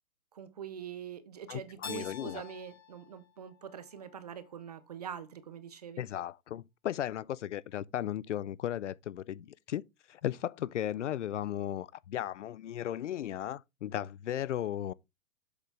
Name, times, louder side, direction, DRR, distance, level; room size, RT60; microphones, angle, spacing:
voice 1, 0.3-6.0, right 8 dB, 30° right, 0.7 m, -44 dB
voice 2, 1.5-2.4 6.0-14.9, left 11 dB, 60° left, 0.6 m, -36 dB
Keyboard (musical), 1.8-4.6, left 7 dB, 15° left, 0.6 m, -48 dB
7.6 x 7.3 x 3.3 m
hypercardioid pair, 175°, 41 cm